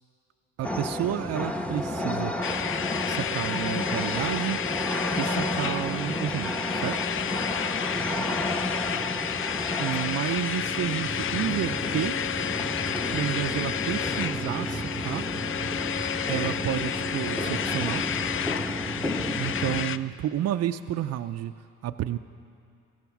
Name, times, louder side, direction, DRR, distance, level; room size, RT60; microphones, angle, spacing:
sound 1, 0.6-19.8, equal, 5° left, 0.9 m, -32 dB
voice 1, 0.6-2.4 3.1-4.6 5.2-7.0 8.6-8.7 9.8-12.2 13.1-15.3 16.3-18.0 19.3-21.5 21.8-22.2, right 12 dB, 55° right, 8 dB, 0.4 m, -30 dB
sound 2, 2.4-20.0, left 9 dB, 45° left, 0.4 m, -31 dB
17.0 x 13.0 x 5.9 m, 2.5 s
cardioid pair, 90°, 30 cm